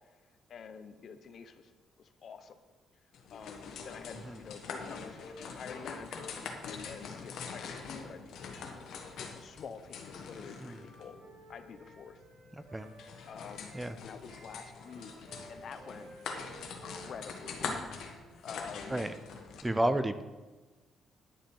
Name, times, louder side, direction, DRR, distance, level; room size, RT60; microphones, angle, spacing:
voice 1, 0.5-1.7 2.0-2.6 3.3-6.3 6.7-8.9 9.2-11.2 11.5-12.2 13.3-16.1 16.6-18.0 18.4-19.0 19.7-20.0, left 6 dB, 55° left, 9 dB, 0.8 m, -48 dB
sound 1, 3.1-19.6, left 5 dB, 75° left, 1.5 m, -44 dB
Wind instrument woodwind instrument, 10.2-14.0 14.2-18.3, right 2 dB, 70° right, 3.8 m, -55 dB
voice 2, 12.5-12.9 13.7-13.9 18.9-19.1 19.6-20.2, right 1 dB, 10° right, 10 dB, 0.6 m, -31 dB
10.5 x 7.2 x 5.4 m, 1.2 s
cardioid pair, 105°, 0 cm